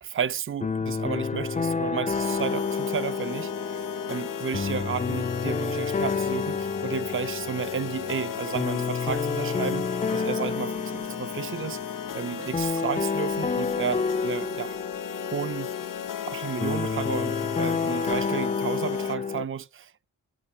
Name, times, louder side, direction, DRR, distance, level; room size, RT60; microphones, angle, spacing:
voice 1, 0.0-11.8 12.1-14.8 15.3-15.7 16.3-20.0, right 7 dB, 40° right, 0.6 m, -32 dB
sound 1, 0.6-19.4, left 4 dB, 25° left, 0.5 m, -30 dB
sound 2, 2.1-19.2, left 9 dB, 75° left, 0.8 m, -35 dB
sound 3, 8.1-8.7 11.0-11.1 12.3-12.9, right 7 dB, 80° right, 1.9 m, -47 dB
13.5 x 5.8 x 7.2 m
cardioid pair, 80°, 33 cm